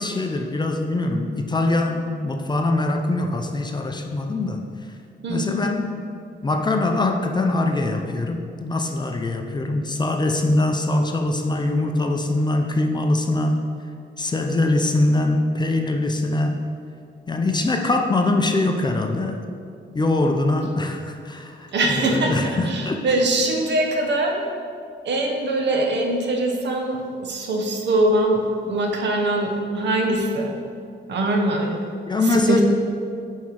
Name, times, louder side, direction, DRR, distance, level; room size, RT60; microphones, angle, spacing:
voice 1, 0.0-4.6 5.3-6.0 6.4-13.6 14.2-16.6 17.3-19.4 19.9-23.1 32.1-32.6, left 2 dB, 25° left, 4 dB, 0.5 m, -23 dB
voice 2, 5.2-5.5 21.7-22.4 22.6-24.4 25.0-30.5 31.1-31.8 32.2-32.6, right 2 dB, 65° right, 2 dB, 0.9 m, -22 dB
8.4 x 3.7 x 4.6 m, 2.3 s
wide cardioid pair, 130°, 19 cm